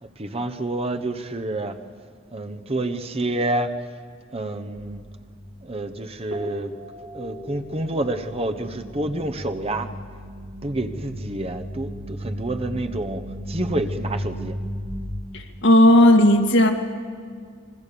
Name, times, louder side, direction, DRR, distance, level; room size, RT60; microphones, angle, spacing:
voice 1, 0.0-1.8 2.3-3.7 4.3-5.0 5.6-9.9 10.6-14.6, right 1 dB, 30° right, 7 dB, 1.1 m, -28 dB
sound 1, 4.8-6.0 6.3-14.9, equal, 85° right, 5.3 m, -35 dB
voice 2, 15.3-16.7, left 1 dB, 65° left, 3 dB, 2.2 m, -14 dB
26.0 x 22.5 x 7.0 m, 2.1 s
head